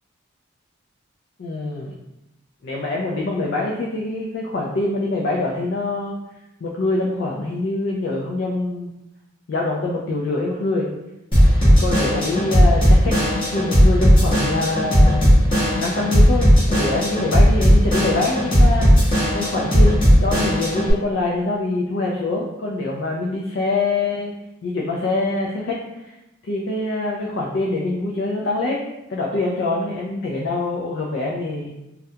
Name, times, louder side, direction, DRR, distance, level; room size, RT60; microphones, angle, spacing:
voice 1, 1.4-2.0 2.6-6.2 6.6-8.9 9.5-10.9 11.8-13.2 13.5-15.5 15.8-24.3 24.6-26.1 26.4-31.7, left 2 dB, 55° left, -2 dB, 0.3 m, -24 dB
Drum kit / Drum, 11.3-20.9, equal, 25° left, 0.8 m, -16 dB
2.4 x 2.1 x 2.7 m, 0.94 s
head